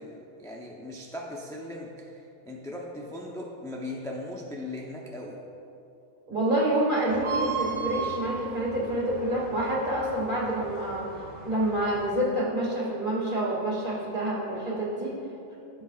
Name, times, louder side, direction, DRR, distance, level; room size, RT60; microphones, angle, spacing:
voice 1, 0.0-2.1 2.5-5.4, left 1 dB, 5° left, -2 dB, 0.6 m, -38 dB
voice 2, 6.3-11.1 11.5-15.1, right 1 dB, 45° right, -6 dB, 2.5 m, -27 dB
sound 1, 7.1-12.1, right 5 dB, 70° right, 1.3 m, -36 dB
15.5 x 7.8 x 2.5 m, 2.7 s
omnidirectional pair, 1.2 m